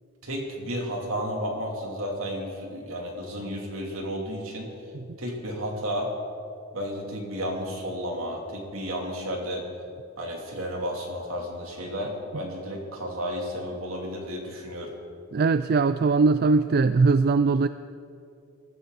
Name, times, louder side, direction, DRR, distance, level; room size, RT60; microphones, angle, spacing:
voice 1, 0.2-4.7 5.2-6.1 6.7-9.7 10.2-14.9, equal, 75° right, 0 dB, 3.1 m, -32 dB
voice 2, 15.3-17.7, right 4 dB, 45° right, 12 dB, 0.3 m, -20 dB
23.5 x 14.5 x 4.1 m, 2.6 s
head